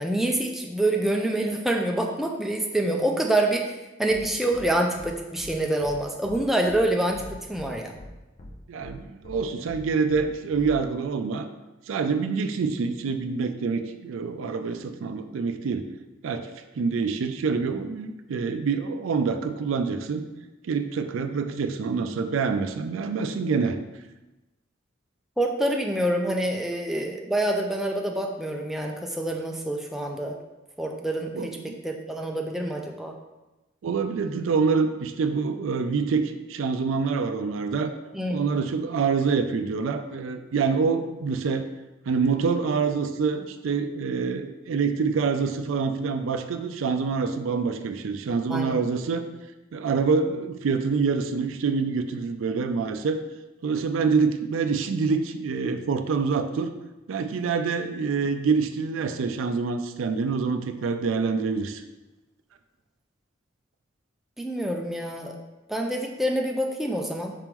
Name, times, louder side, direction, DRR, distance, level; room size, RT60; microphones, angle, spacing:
voice 1, 0.0-7.2 7.5-7.9 25.4-30.4 30.8-33.1 38.1-38.5 48.5-48.8 64.4-65.4 65.7-67.3, right 1 dB, ahead, 1 dB, 0.4 m, -26 dB
sound 1, 4.1-4.2 4.5-4.7 4.9-5.1 5.4-5.5 5.8-5.9 6.2-6.4 6.7-6.8 7.1-7.7 7.9-8.1 8.4-8.5 8.8-8.9 9.2-9.4 9.7-9.8 10.1-10.2 10.5-10.8, left 1 dB, 40° left, 0.7 m, -43 dB
voice 2, 8.7-11.5 11.9-15.8 16.2-16.5 16.8-20.2 20.6-23.8 31.4-31.8 33.8-37.9 38.3-41.7 42.1-49.2 49.7-53.2 53.6-56.7 57.1-61.8, right 5 dB, 90° right, 8 dB, 0.4 m, -26 dB
5.0 x 3.6 x 3.0 m, 1.1 s
head